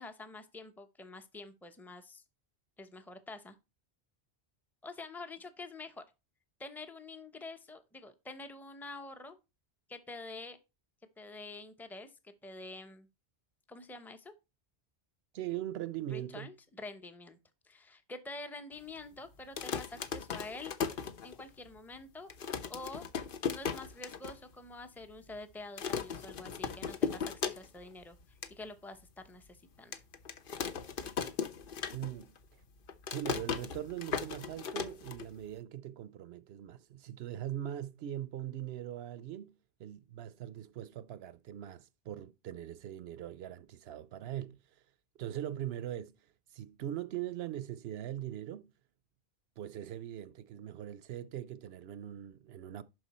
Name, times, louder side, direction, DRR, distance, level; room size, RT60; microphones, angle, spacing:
voice 1, 0.0-2.2 2.8-3.6 4.8-6.0 6.6-9.4 9.9-10.6 11.2-13.1 13.7-14.3 16.1-17.4 17.6-20.7 21.2-22.3 22.7-23.1 23.5-28.2 28.5-29.9, left 2 dB, ahead, 0.7 m, -47 dB
voice 2, 15.3-16.5 31.9-32.3 33.1-39.5 39.8-44.6 45.2-46.1 46.5-48.7 49.6-52.8, right 12 dB, 75° right, 0.8 m, -41 dB
sound 1, 19.4-21.7 22.0-22.1 22.3-24.4 24.7-24.8 25.0-25.4 25.8-27.9 28.2-28.5 29.1-29.2 29.9-32.4 32.6-35.6, left 6 dB, 60° left, 0.9 m, -37 dB
11.5 x 4.6 x 4.2 m
omnidirectional pair, 1.1 m